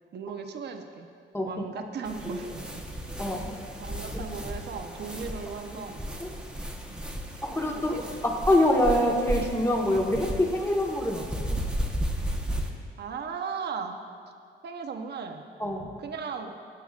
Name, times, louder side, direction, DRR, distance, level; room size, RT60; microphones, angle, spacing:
voice 1, 0.1-1.1 1.4-2.9 3.8-6.1 6.9-7.0 7.7-8.3 12.6-14.0 14.6-15.5 16.0-16.6, right 5 dB, 55° right, 5 dB, 1.0 m, -37 dB
sound 1, 2.0-12.7, equal, 5° right, 1.2 m, -34 dB
voice 2, 3.2-3.5 4.1-4.2 6.2-6.3 7.4-7.9 8.2-11.3 15.6-15.9, left 1 dB, 15° left, -1 dB, 1.6 m, -25 dB
20.0 x 9.0 x 2.6 m, 2.2 s
cardioid pair, 90°, 20 cm